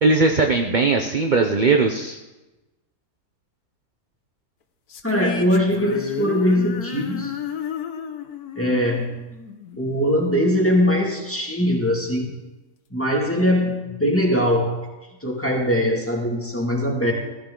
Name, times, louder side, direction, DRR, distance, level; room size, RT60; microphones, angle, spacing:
voice 1, 0.0-2.2, right 3 dB, 40° right, 4 dB, 0.8 m, -19 dB
sound 1, 4.9-10.3, left 6 dB, 70° left, 1.5 m, -32 dB
voice 2, 5.0-7.4 8.6-9.2 9.8-12.3 12.9-14.8 15.2-17.1, equal, 10° left, -1 dB, 2.1 m, -21 dB
16.0 x 15.0 x 3.9 m, 1.1 s
omnidirectional pair, 1.7 m